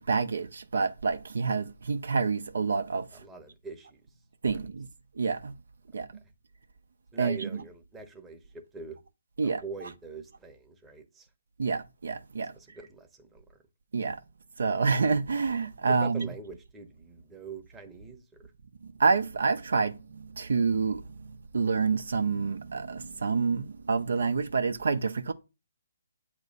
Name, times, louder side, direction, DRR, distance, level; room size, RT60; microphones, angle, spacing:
voice 1, 0.0-3.2 4.4-4.9 5.1-5.5 5.9-6.1 7.2-7.6 9.4-9.6 11.6-12.5 13.9-14.2 14.6-16.3 18.8-25.3, right 4 dB, 70° right, 0.6 m, -28 dB
voice 2, 3.1-4.0 7.1-9.0 9.4-11.3 12.5-13.6 15.9-18.5, right 4 dB, 10° right, 0.8 m, -44 dB
8.1 x 3.0 x 5.3 m
figure-of-eight pair, 145°, 0 cm